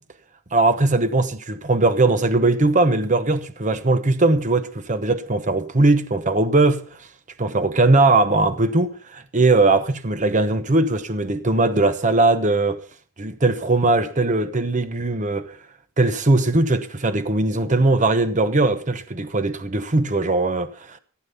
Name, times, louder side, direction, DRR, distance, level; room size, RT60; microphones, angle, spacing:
voice 1, 0.5-6.9 7.4-12.8 13.2-15.6 16.0-21.0, right 2 dB, 35° right, 1.0 m, -19 dB
15.5 x 9.0 x 5.5 m
head